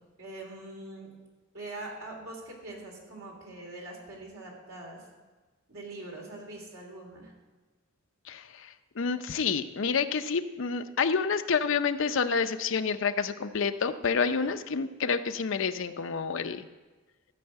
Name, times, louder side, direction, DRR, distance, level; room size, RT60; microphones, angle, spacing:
voice 1, 0.2-1.1 1.5-5.0 5.7-7.3, right 2 dB, 80° right, -1 dB, 3.2 m, -43 dB
voice 2, 8.3-16.7, left 5 dB, 60° left, 8 dB, 0.6 m, -29 dB
14.0 x 5.5 x 7.9 m, 1.3 s
head